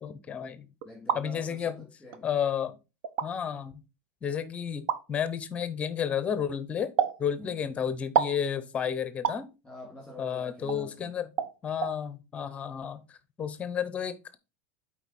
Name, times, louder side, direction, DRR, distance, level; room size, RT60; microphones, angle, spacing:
voice 1, 0.0-0.7 1.1-1.8 2.2-2.7 3.2-3.7 4.2-6.9 7.2-9.5 10.2-11.3 11.6-14.4, left 8 dB, 20° left, 0.7 m, -32 dB
voice 2, 0.8-2.3 7.4-7.5 9.6-11.1, left 1 dB, ahead, 2.4 m, -46 dB
sound 1, 0.8-1.2 2.1-2.2 3.0-3.3 4.9-5.0 7.0-7.2 8.1-8.4 9.2-9.4 10.7-10.8 11.4-11.5 11.8-11.9, right 8 dB, 55° right, 0.8 m, -27 dB
7.9 x 4.7 x 4.2 m
supercardioid pair, 160°, 7 cm